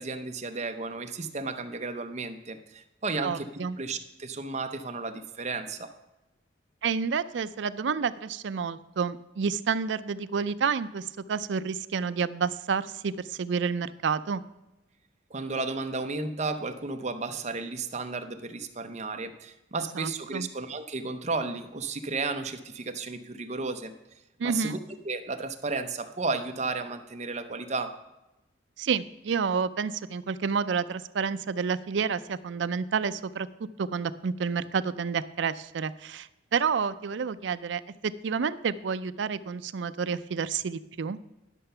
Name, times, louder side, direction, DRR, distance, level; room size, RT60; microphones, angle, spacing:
voice 1, 0.0-3.5 3.8-5.9 15.3-23.9 24.4-24.8 25.0-27.9, right 3 dB, 35° right, 7 dB, 0.7 m, -33 dB
voice 2, 3.2-3.8 6.8-14.4 20.0-20.5 24.4-24.8 28.8-33.5 33.8-41.2, right 6 dB, 75° right, 14 dB, 0.4 m, -29 dB
11.0 x 6.7 x 5.6 m, 0.97 s
head